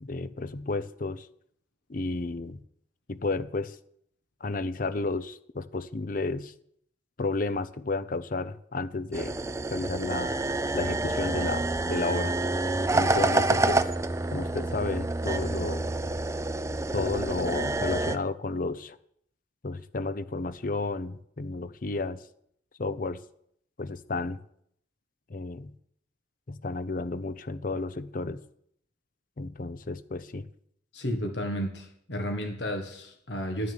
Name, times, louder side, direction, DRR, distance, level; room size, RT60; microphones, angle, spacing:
voice 1, 0.0-1.3 1.9-2.6 3.1-3.8 4.4-6.5 7.2-9.4 9.7-10.4 10.7-12.4 12.9-13.8 14.3-15.9 16.9-19.0 19.6-22.2 22.8-23.2 23.8-24.4 25.3-25.7 26.5-28.4 29.4-30.5, left 3 dB, 50° left, 15 dB, 0.7 m, -32 dB
sound 1, 9.1-18.2, right 2 dB, 15° right, 0.5 m, -28 dB
voice 2, 30.9-33.7, equal, 70° left, 4 dB, 1.5 m, -32 dB
11.0 x 6.5 x 8.9 m, 0.69 s
head